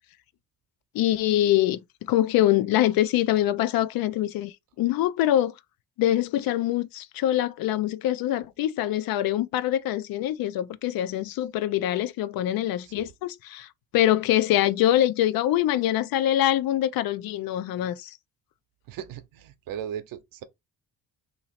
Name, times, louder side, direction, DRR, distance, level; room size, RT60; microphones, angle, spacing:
voice 1, 0.9-5.5 6.0-18.2, left 13 dB, 90° left, 0.5 m, -24 dB
voice 2, 18.9-20.4, right 9 dB, 75° right, 0.7 m, -37 dB
2.9 x 2.8 x 4.1 m
cardioid pair, 165°, 34 cm